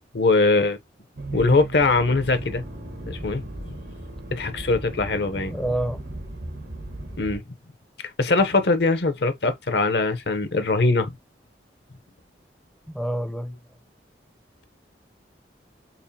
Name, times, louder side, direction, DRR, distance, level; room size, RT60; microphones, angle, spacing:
voice 1, 0.1-0.8 1.3-2.6 3.1-3.7 4.3-5.5 7.2-7.4 8.2-11.1, left 3 dB, 70° left, 0.7 m, -21 dB
Accelerating revving vroom, 1.2-7.4, right 1 dB, 85° right, 1.3 m, -36 dB
voice 2, 5.5-6.0 12.9-13.6, right 1 dB, ahead, 0.5 m, -28 dB
5.3 x 2.4 x 2.7 m
head